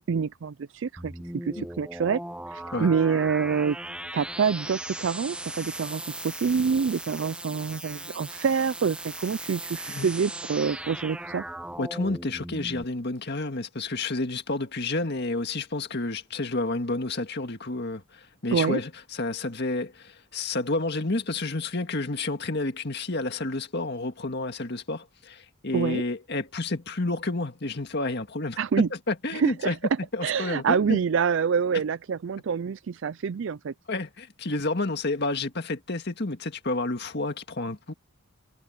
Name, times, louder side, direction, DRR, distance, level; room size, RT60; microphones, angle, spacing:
voice 1, 0.0-2.2 2.5-3.8 4.1-11.4 18.5-18.8 25.7-26.0 28.6-28.9 29.3-29.8 30.2-33.7, right 6 dB, 60° right, 0.4 m, -26 dB
sound 1, 1.0-12.8, right 1 dB, 5° right, 1.2 m, -38 dB
voice 2, 11.8-28.6 28.9-29.8 30.1-31.0 33.9-37.9, left 2 dB, 55° left, 1.9 m, -30 dB
head